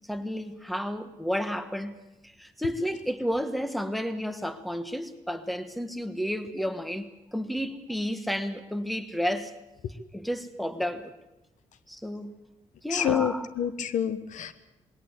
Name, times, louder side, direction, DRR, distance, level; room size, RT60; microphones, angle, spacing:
voice 1, 0.1-1.9 2.2-9.5 10.1-11.1 11.9-12.3 12.8-13.5, equal, ahead, 11 dB, 1.4 m, -31 dB
voice 2, 12.9-14.5, left 9 dB, 75° left, 13 dB, 1.2 m, -28 dB
21.0 x 17.5 x 8.2 m, 0.97 s
cardioid pair, 110°, 13 cm